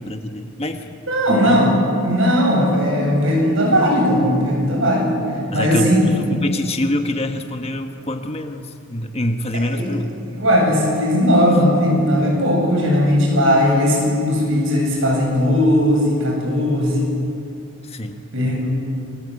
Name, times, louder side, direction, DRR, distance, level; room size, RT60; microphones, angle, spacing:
voice 1, 0.0-0.9 1.3-1.6 5.5-8.6 8.9-10.1 17.9-18.2, left 1 dB, 30° left, 6 dB, 1.4 m, -25 dB
voice 2, 1.1-5.2 5.5-6.1 9.5-9.9 10.3-17.1 18.3-18.7, equal, 60° right, 0 dB, 7.8 m, -17 dB
28.0 x 23.0 x 8.4 m, 2.6 s
head